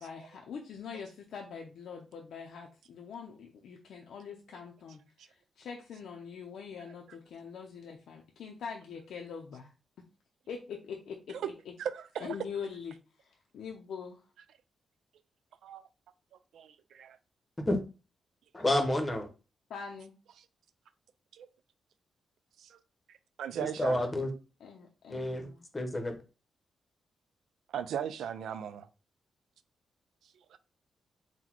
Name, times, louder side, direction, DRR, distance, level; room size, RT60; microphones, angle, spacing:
voice 1, 0.0-5.0 5.3-9.7 10.5-11.5 12.2-14.2 19.7-20.1 24.6-25.7, left 6 dB, 80° left, 0.6 m, -43 dB
voice 2, 11.8-12.4 15.6-15.9 16.5-17.2 21.3-21.5 22.6-22.8 23.4-24.0 27.7-28.9 30.5-30.6, right 9 dB, 90° right, 0.4 m, -37 dB
voice 3, 18.5-19.3 23.8-24.3 25.1-25.5 25.7-26.1, left 1 dB, 20° left, 0.8 m, -29 dB
3.9 x 2.2 x 4.4 m
cardioid pair, 115°, 0 cm